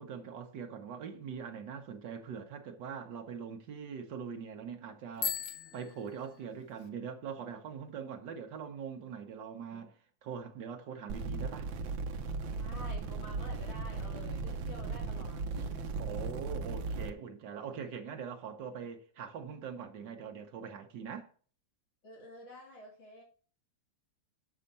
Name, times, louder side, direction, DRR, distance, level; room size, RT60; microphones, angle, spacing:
voice 1, 0.0-5.5 5.7-11.7 16.0-21.3, right 6 dB, 70° right, 1.6 m, -42 dB
Bicycle bell, 5.1-6.9, left 5 dB, 55° left, 1.2 m, -39 dB
sound 1, 11.1-17.1, right 4 dB, 85° right, 1.5 m, -37 dB
voice 2, 12.5-15.9 22.0-23.2, left 1 dB, 80° left, 3.7 m, -49 dB
7.3 x 5.6 x 5.3 m
omnidirectional pair, 2.0 m